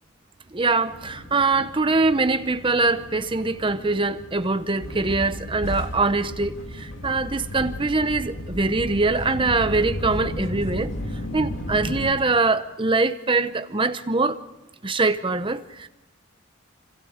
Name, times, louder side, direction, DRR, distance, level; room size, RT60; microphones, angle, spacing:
voice 1, 0.5-10.9 11.3-14.4 14.8-15.9, right 3 dB, 25° right, 0.8 m, -23 dB
sound 1, 0.8-12.1, left 1 dB, 60° left, 2.9 m, -34 dB
26.5 x 26.0 x 5.1 m
head